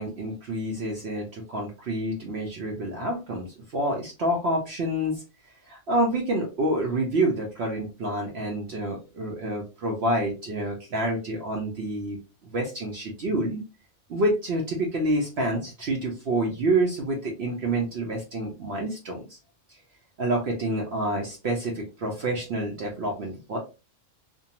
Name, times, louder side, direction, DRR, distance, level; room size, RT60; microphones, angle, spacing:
voice 1, 0.0-5.2 5.7-12.2 12.4-13.6 14.1-19.3 20.2-23.6, right 1 dB, 65° right, 0 dB, 0.8 m, -28 dB
2.5 x 2.2 x 2.7 m, 0.31 s
omnidirectional pair, 1.3 m